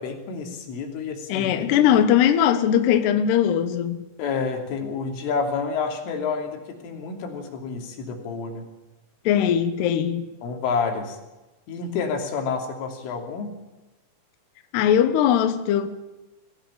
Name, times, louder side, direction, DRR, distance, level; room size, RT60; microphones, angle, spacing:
voice 1, 0.0-1.9 4.2-8.7 10.4-11.2 11.7-13.5, left 5 dB, 85° left, 5.5 m, -29 dB
voice 2, 1.3-4.0 9.3-10.3 14.7-15.9, left 9 dB, 70° left, 3.0 m, -20 dB
22.5 x 16.5 x 8.6 m
omnidirectional pair, 5.6 m